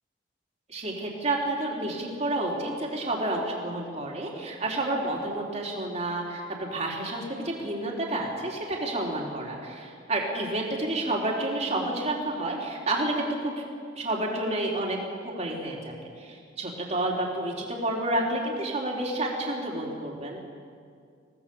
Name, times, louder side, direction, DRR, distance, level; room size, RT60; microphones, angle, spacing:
voice 1, 0.7-13.5 14.0-15.0 15.2-20.4, right 2 dB, 35° right, -2 dB, 4.0 m, -30 dB
24.0 x 18.0 x 7.2 m, 2.2 s
head